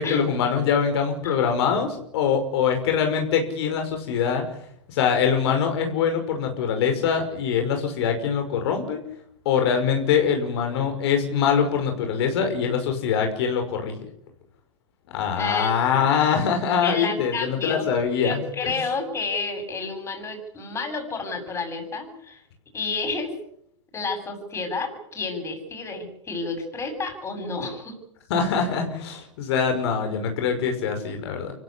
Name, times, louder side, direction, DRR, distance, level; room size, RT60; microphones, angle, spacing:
voice 1, 0.0-4.4 4.9-9.0 9.5-14.0 15.1-18.8 28.3-31.5, left 7 dB, 60° left, 5 dB, 5.7 m, -23 dB
voice 2, 15.4-16.1 16.8-17.9 18.2-22.4 22.7-23.4 23.9-27.9, left 4 dB, 15° left, 5 dB, 7.7 m, -30 dB
25.5 x 16.0 x 10.0 m, 0.72 s
hypercardioid pair, 130°, 16 cm